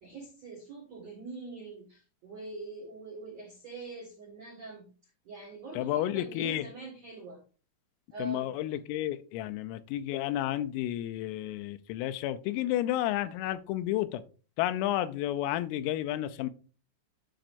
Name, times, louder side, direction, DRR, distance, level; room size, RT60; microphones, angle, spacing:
voice 1, 0.0-4.9 5.2-7.4 8.1-8.5, right 3 dB, 70° right, 1.6 m, -44 dB
voice 2, 5.7-6.7 8.2-14.2 14.6-16.5, left 13 dB, 90° left, 3.3 m, -31 dB
11.5 x 5.0 x 2.6 m
omnidirectional pair, 5.9 m